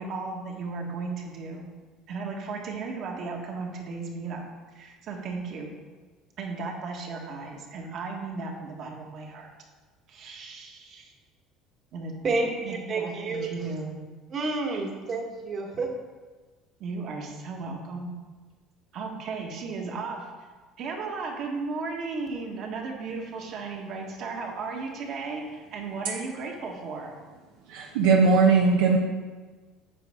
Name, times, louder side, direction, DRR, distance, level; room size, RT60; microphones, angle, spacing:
voice 1, 0.0-1.7 2.1-4.4 4.7-5.7 6.4-9.5 10.1-11.1 11.9-14.0 14.7-14.8 16.8-18.1 18.9-20.3 20.8-27.1, right 4 dB, 55° right, 1 dB, 1.6 m, -35 dB
voice 2, 12.2-13.7 14.3-15.9, right 3 dB, 40° right, 1 dB, 1.4 m, -30 dB
voice 3, 27.7-29.0, right 4 dB, 85° right, -1 dB, 0.8 m, -19 dB
9.3 x 5.3 x 3.7 m, 1.3 s
supercardioid pair, 100°, 0 cm